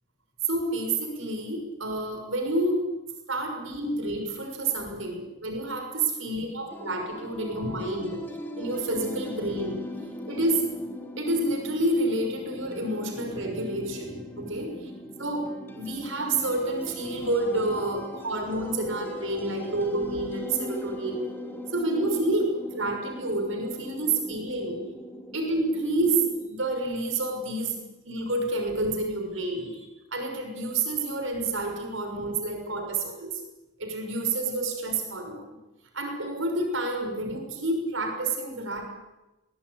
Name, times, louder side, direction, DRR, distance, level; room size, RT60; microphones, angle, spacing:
voice 1, 0.4-2.8 3.3-8.2 8.6-9.8 10.3-10.6 11.2-14.9 15.2-15.5 15.7-21.2 21.7-24.8 25.3-27.8 28.1-33.4 33.8-35.5 35.9-38.8, right 2 dB, 90° right, 3 dB, 6.2 m, -29 dB
sound 1, 6.7-26.5, equal, 10° left, 2.5 m, -40 dB
22.5 x 19.5 x 9.8 m, 1.1 s
head